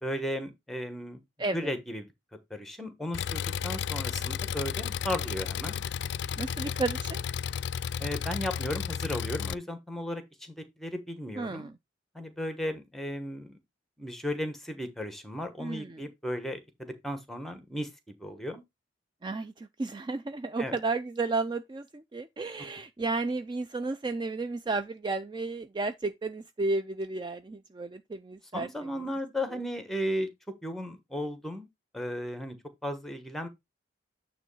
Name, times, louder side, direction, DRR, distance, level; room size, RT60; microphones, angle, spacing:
voice 1, 0.0-1.2 1.5-2.1 2.5-5.8 6.6-6.7 8.0-11.7 12.1-13.6 14.0-17.9 18.2-18.6 20.6-20.8 28.5-30.3 30.6-31.7 31.9-32.6 32.8-33.5, equal, ahead, 1.1 m, -35 dB
voice 2, 1.4-1.7 6.4-7.2 11.4-11.7 15.6-16.1 19.2-28.7, right 3 dB, 25° right, 0.3 m, -33 dB
Engine, 3.1-9.5, left 8 dB, 60° left, 0.3 m, -33 dB
9.2 x 3.1 x 5.4 m
head